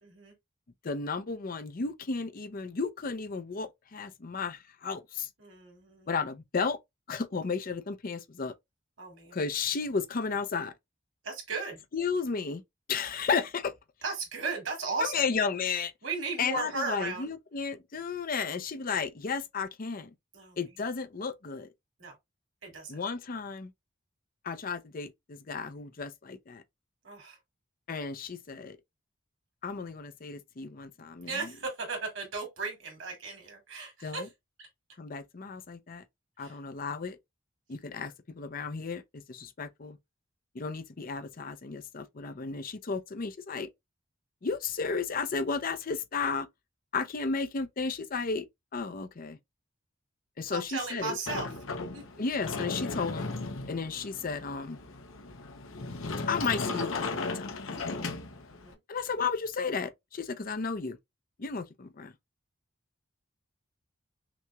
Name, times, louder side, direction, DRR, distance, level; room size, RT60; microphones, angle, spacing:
voice 1, 0.0-0.3 5.4-6.1 9.0-9.4 11.2-11.8 14.0-15.2 16.0-17.3 20.3-20.6 22.0-22.1 22.6-23.0 27.0-27.4 31.3-34.3 34.6-34.7 36.4-36.6 50.5-51.5 51.9-52.2 58.5-58.8, right 4 dB, 75° right, 2.5 m, -36 dB
voice 2, 0.8-5.3 6.1-6.8 7.1-8.5 9.3-10.7 11.9-12.6 12.9-13.7 15.0-15.9 16.4-20.1 20.6-21.7 22.9-23.7 24.4-26.6 27.9-28.8 29.6-31.5 34.0-34.3 35.0-36.0 36.4-37.2 37.7-40.0 40.5-43.7 44.4-46.5 46.9-48.5 48.7-49.4 50.4-51.2 52.2-53.3 53.7-54.8 56.3-57.5 58.9-61.0 61.4-62.1, left 5 dB, 45° left, 0.6 m, -33 dB
Sliding door, 51.3-58.7, left 3 dB, 90° left, 0.9 m, -36 dB
5.9 x 2.8 x 2.3 m
head